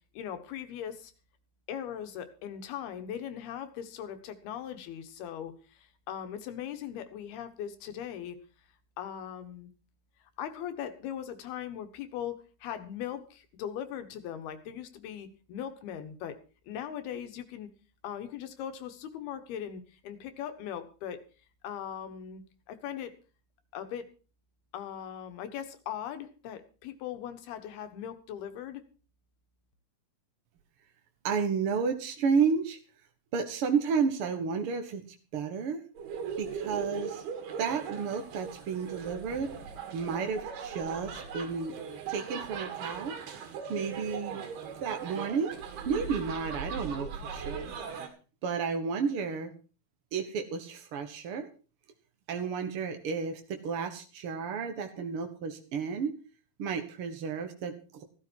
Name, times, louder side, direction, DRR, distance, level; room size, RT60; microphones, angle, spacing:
voice 1, 0.1-1.1 1.7-8.4 9.0-9.7 10.4-16.4 16.7-17.7 18.0-21.2 21.6-23.1 23.7-24.1 24.7-28.8, left 9 dB, 80° left, 8 dB, 3.4 m, -39 dB
voice 2, 31.2-32.8 33.3-35.0 35.3-35.8 36.4-37.2 37.6-39.5 39.9-41.8 42.1-43.2 43.7-44.4 44.8-45.6 45.8-48.1 48.4-49.5 50.1-51.5 52.3-56.2 56.6-58.0, right 5 dB, 60° right, 5 dB, 1.4 m, -32 dB
sound 1, 35.9-48.1, right 6 dB, 80° right, 4.0 m, -39 dB
15.0 x 13.5 x 4.6 m, 0.36 s
omnidirectional pair, 4.4 m